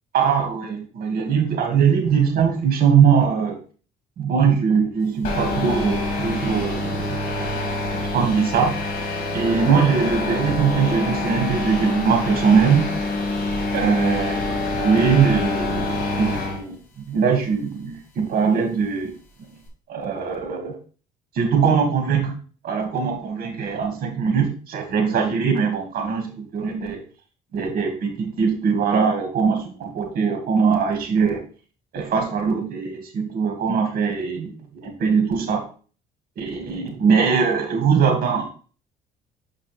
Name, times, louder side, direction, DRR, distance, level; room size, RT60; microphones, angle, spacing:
voice 1, 0.1-3.6 4.2-8.8 9.3-12.9 13.7-19.1 19.9-20.8 21.3-22.3 22.6-27.0 27.5-31.4 31.9-34.5 34.8-35.6 36.4-38.5, right 6 dB, 60° right, 3 dB, 2.3 m, -21 dB
sound 1, 5.2-16.6, left 2 dB, 60° left, 2.6 m, -26 dB
6.6 x 5.3 x 3.5 m, 0.39 s
cardioid pair, 110°, 17 cm